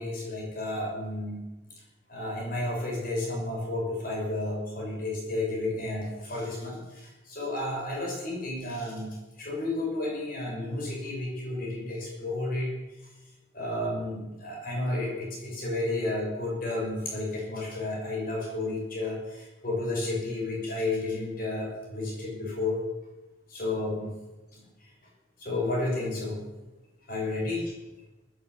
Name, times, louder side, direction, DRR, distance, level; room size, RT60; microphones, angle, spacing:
voice 1, 0.0-1.4 2.1-12.7 13.5-22.8 23.5-24.1 24.5-24.6 25.4-26.4 27.1-27.7, left 2 dB, 45° left, -1 dB, 5.9 m, -32 dB
15.0 x 10.5 x 8.0 m, 1.1 s
head